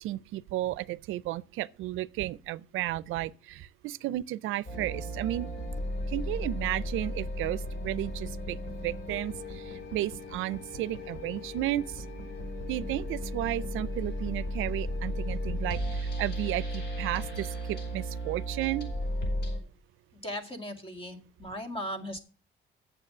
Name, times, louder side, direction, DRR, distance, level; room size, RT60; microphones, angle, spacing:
voice 1, 0.0-5.5 6.1-8.6 8.8-12.0 12.7-18.9, right 15 dB, 85° right, 0.4 m, -33 dB
sound 1, 4.7-19.6, equal, 55° left, 4.9 m, -35 dB
voice 2, 20.2-22.2, equal, 25° left, 2.0 m, -37 dB
8.4 x 7.1 x 6.6 m
cardioid pair, 90°, 20 cm